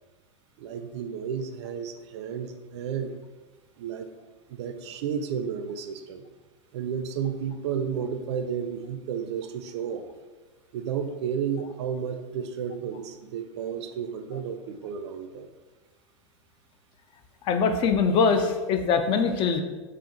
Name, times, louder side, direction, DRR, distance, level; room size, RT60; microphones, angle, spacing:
voice 1, 0.6-3.1 3.8-4.1 4.5-6.2 6.7-10.2 10.7-15.5, right 7 dB, 60° right, 7 dB, 0.4 m, -32 dB
voice 2, 17.5-19.6, left 5 dB, 35° left, 7 dB, 0.3 m, -22 dB
4.3 x 2.4 x 2.7 m, 1.2 s
hypercardioid pair, 95°, 16 cm